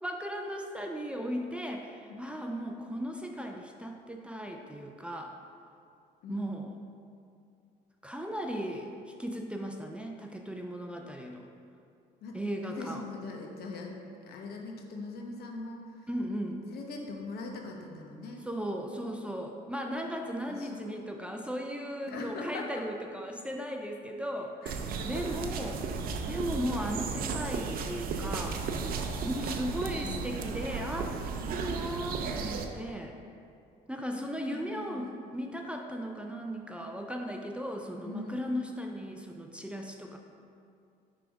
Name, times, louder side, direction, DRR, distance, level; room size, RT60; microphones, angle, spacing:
voice 1, 0.0-5.3 6.3-6.7 8.0-11.5 12.3-13.1 16.1-16.7 18.4-24.5 25.0-25.8 26.3-28.6 29.2-33.2 33.9-40.2, equal, 5° right, 2 dB, 0.4 m, -36 dB
voice 2, 12.2-14.0 14.2-16.1 16.7-18.4 20.5-21.0 22.1-22.8 24.6-25.1 29.9-30.6 34.1-35.2 38.0-38.5, left 3 dB, 65° left, 1 dB, 0.9 m, -42 dB
sound 1, 24.7-32.7, right 5 dB, 60° right, 0.5 m, -34 dB
5.9 x 3.5 x 5.1 m, 2.4 s
cardioid pair, 110°, 17 cm